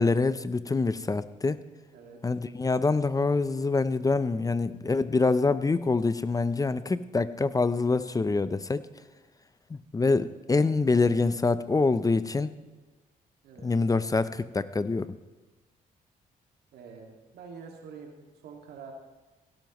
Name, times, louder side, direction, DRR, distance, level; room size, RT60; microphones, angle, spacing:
voice 1, 0.0-1.6 2.2-8.8 9.7-12.5 13.6-15.2, left 3 dB, 20° left, 14 dB, 0.5 m, -25 dB
voice 2, 13.4-13.8 16.7-18.9, right 5 dB, 90° right, 2 dB, 2.0 m, -46 dB
17.0 x 12.0 x 3.1 m, 1.2 s
cardioid pair, 75°, 16 cm